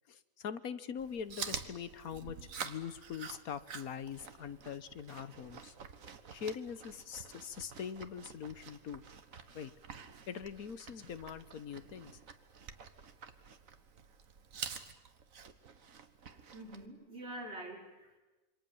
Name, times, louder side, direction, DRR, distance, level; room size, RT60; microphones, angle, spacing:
voice 1, 0.1-2.4 2.6-5.7 6.3-9.0 9.5-9.7 10.3-12.1, left 7 dB, 85° left, 13 dB, 1.5 m, -43 dB
Chewing mastication, 1.0-16.9, right 6 dB, 70° right, 1.8 m, -48 dB
voice 2, 16.5-18.2, right 1 dB, 50° right, -1 dB, 5.4 m, -46 dB
27.5 x 25.0 x 7.2 m, 1.1 s
omnidirectional pair, 1.5 m